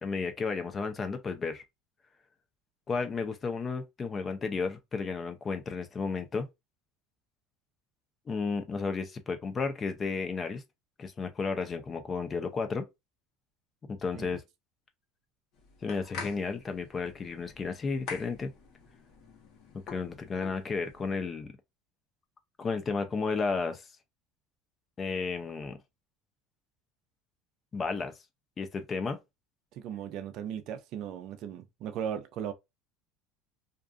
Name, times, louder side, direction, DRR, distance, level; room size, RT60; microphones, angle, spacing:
voice 1, 0.0-1.6 2.9-6.5 8.3-10.6 11.0-12.9 13.9-14.4 15.8-18.5 19.7-21.5 22.6-23.9 25.0-25.8 27.7-28.1 28.6-29.2, left 4 dB, 25° left, 0.5 m, -33 dB
sound 1, 15.5-21.1, left 5 dB, 55° left, 1.1 m, -46 dB
voice 2, 29.7-32.5, right 9 dB, 55° right, 0.5 m, -37 dB
2.5 x 2.4 x 2.4 m
supercardioid pair, 125°, 0 cm